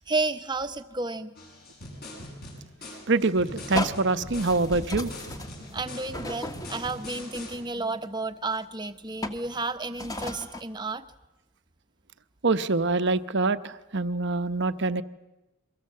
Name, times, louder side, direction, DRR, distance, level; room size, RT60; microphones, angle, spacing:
voice 1, 0.0-1.3 5.7-11.0, right 3 dB, 20° right, 9 dB, 1.1 m, -32 dB
sound 1, 1.4-7.6, left 1 dB, 45° left, 7.9 m, -42 dB
voice 2, 3.1-5.1 12.4-15.0, right 3 dB, 55° right, 11 dB, 0.9 m, -25 dB
sound 2, 3.3-3.4 3.7-7.2 8.0-8.1 9.2-9.5 10.0-10.6, left 1 dB, 15° left, 1.5 m, -35 dB
28.5 x 23.5 x 7.6 m, 0.98 s
head